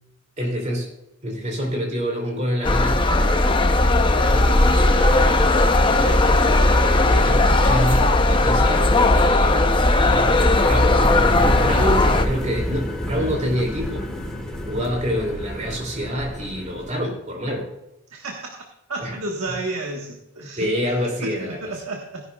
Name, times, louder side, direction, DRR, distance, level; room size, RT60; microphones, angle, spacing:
voice 1, 0.4-0.9 1.2-3.1 4.3-5.3 6.0-10.3 10.6-14.1 14.7-17.7 19.0-19.1 20.6-21.7, equal, 35° right, 0 dB, 2.9 m, -27 dB
sound 1, 2.6-12.3, left 2 dB, 20° left, 0.6 m, -17 dB
voice 2, 10.5-11.1 11.8-12.2 18.1-18.6 18.9-20.7 21.2-22.3, right 2 dB, 80° right, 1 dB, 1.4 m, -32 dB
sound 2, 10.9-16.9, equal, 5° left, 1.5 m, -30 dB
17.0 x 11.0 x 2.4 m, 0.87 s
head